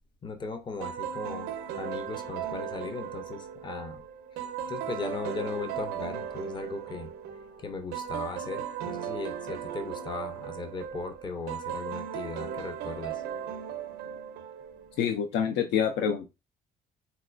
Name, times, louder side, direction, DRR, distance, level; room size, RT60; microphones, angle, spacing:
voice 1, 0.2-4.0 4.7-7.1 7.6-13.2, left 4 dB, 25° left, 8 dB, 0.5 m, -38 dB
sound 1, 0.8-15.0, right 9 dB, 80° right, 0.5 m, -37 dB
voice 2, 15.0-16.3, left 8 dB, 85° left, 6 dB, 0.4 m, -27 dB
4.1 x 2.2 x 2.4 m, 0.26 s
cardioid pair, 110°, 17 cm